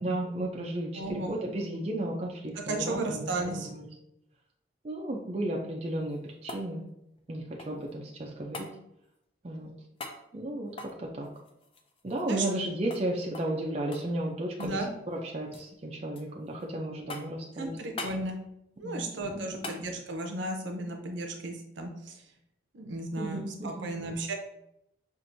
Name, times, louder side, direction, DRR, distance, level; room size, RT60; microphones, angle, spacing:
voice 1, 0.0-3.9 4.8-6.8 7.3-8.7 9.4-9.7 10.3-10.7 11.0-11.3 12.0-14.8 15.1-17.8 18.8-19.1 19.3-19.7 23.2-23.9, right 1 dB, 30° right, -1 dB, 0.4 m, -34 dB
voice 2, 1.0-1.4 2.7-3.7 12.3-12.4 14.6-14.9 17.6-18.4 18.8-22.2 22.7-24.3, right 2 dB, 70° right, 3 dB, 0.7 m, -34 dB
sound 1, 5.9-7.9 8.5-8.7 10.0-10.2 10.7-12.7 12.9-13.1 13.3-13.6 13.9-14.8 15.1-15.7 16.2-16.7 17.1-17.5 18.0-18.2 19.6-19.8 22.2-22.3, left 2 dB, 30° left, 0.4 m, -43 dB
5.8 x 2.5 x 2.6 m, 0.80 s
head